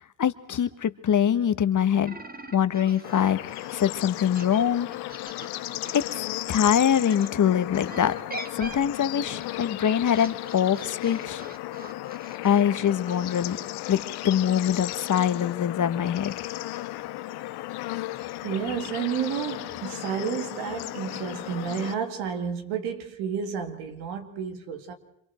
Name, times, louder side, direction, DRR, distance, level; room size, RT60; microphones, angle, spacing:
voice 1, 0.0-2.2 2.5-3.4 3.7-4.9 5.9-8.1 8.5-11.4 12.4-13.6 13.9-16.4, left 9 dB, 50° left, 1.6 m, -24 dB
sound 1, 2.0-7.3 7.8-13.7, right 1 dB, 20° right, 2.5 m, -43 dB
Bird / Insect / Frog, 3.0-21.9, left 16 dB, 75° left, 1.2 m, -35 dB
voice 2, 18.4-24.9, right 7 dB, 80° right, 3.0 m, -31 dB
29.0 x 26.0 x 4.5 m
hypercardioid pair, 55°, 39 cm